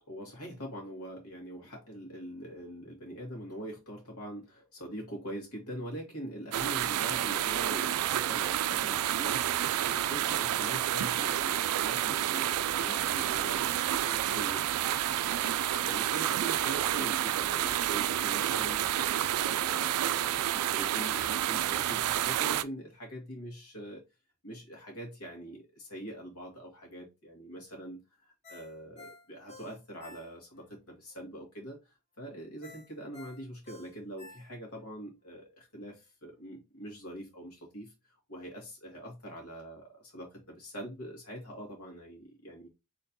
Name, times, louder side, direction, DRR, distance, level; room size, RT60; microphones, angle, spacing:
voice 1, 0.1-9.5 9.9-13.6 14.0-14.6 15.0-18.8 19.4-24.0 24.4-42.7, right 1 dB, 80° left, 2.3 m, -43 dB
sound 1, 6.5-22.6, right 12 dB, 85° right, 0.3 m, -29 dB
Ringtone, 28.4-30.7 31.1-31.2 32.6-34.9 35.3-35.4, left 3 dB, 30° left, 1.5 m, -52 dB
4.4 x 3.7 x 2.8 m
head